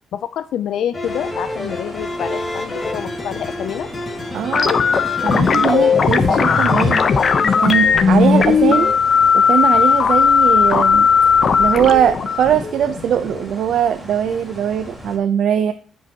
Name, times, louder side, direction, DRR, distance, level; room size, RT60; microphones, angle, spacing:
voice 1, 0.1-3.9, left 10 dB, 80° left, 10 dB, 0.5 m, -27 dB
sound 1, 0.9-9.0, left 1 dB, 25° left, 2.3 m, -27 dB
sound 2, 1.0-15.2, equal, 5° right, 4.3 m, -36 dB
voice 2, 4.3-4.7 5.2-7.1 7.6-8.9 9.3-11.1 11.6-15.7, right 9 dB, 75° right, 8 dB, 0.6 m, -20 dB
sound 3, 4.5-13.4, left 6 dB, 50° left, 0.9 m, -16 dB
15.5 x 5.5 x 2.9 m, 0.42 s
cardioid pair, 120°, 0 cm